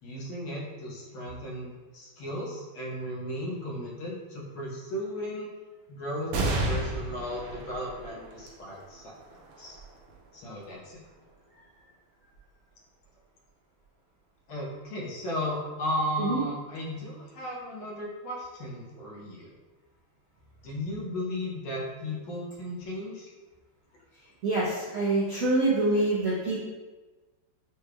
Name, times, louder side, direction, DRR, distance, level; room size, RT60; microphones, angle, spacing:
voice 1, 0.0-5.5 5.9-9.1 9.6-9.8 10.3-11.0 14.5-19.5 20.6-23.3, equal, 70° left, -4 dB, 1.7 m, -35 dB
sound 1, 6.3-13.2 13.8-13.9 15.0-15.6, right 2 dB, 80° right, 1.7 m, -35 dB
voice 2, 24.4-26.6, right 2 dB, 65° right, -8 dB, 0.8 m, -25 dB
6.4 x 3.1 x 2.3 m, 1.2 s
omnidirectional pair, 2.4 m